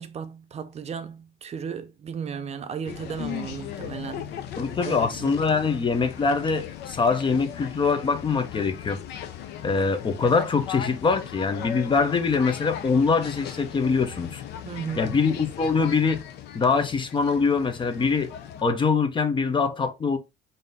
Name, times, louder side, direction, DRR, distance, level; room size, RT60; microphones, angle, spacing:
voice 1, 0.0-4.2 4.8-5.3 14.6-15.2, right 7 dB, 40° right, 0.6 m, -35 dB
sound 1, 2.8-18.6, left 10 dB, 80° left, 0.6 m, -38 dB
voice 2, 4.6-9.0 9.6-14.4 15.0-16.2 16.5-18.3 18.6-20.2, left 4 dB, 30° left, 0.6 m, -23 dB
3.6 x 2.7 x 4.0 m
cardioid pair, 110°, 17 cm